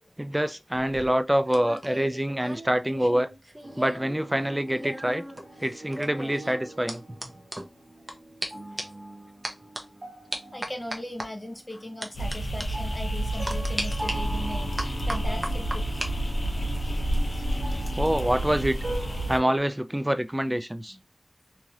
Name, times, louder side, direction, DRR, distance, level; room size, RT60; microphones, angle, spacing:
voice 1, 0.2-3.3 3.8-5.2 5.6-7.0 18.0-18.8 19.3-21.0, right 1 dB, 15° right, 0.4 m, -26 dB
sound 1, 0.7-4.1 4.4-8.1 8.4-8.5 8.8-9.0 9.4-9.8 10.3-11.3 12.0-12.3 12.6-12.7 13.5-14.1 14.8-16.1 16.4-16.8, right 1 dB, 30° right, 0.8 m, -36 dB
sound 2, 3.6-19.6, right 1 dB, 50° right, 1.0 m, -42 dB
voice 2, 10.3-16.1 19.2-19.3 20.9-21.0, left 1 dB, 25° left, 0.9 m, -39 dB
sound 3, 12.1-19.4, right 1 dB, 75° left, 0.8 m, -29 dB
3.1 x 2.8 x 2.4 m
wide cardioid pair, 70°, 0 cm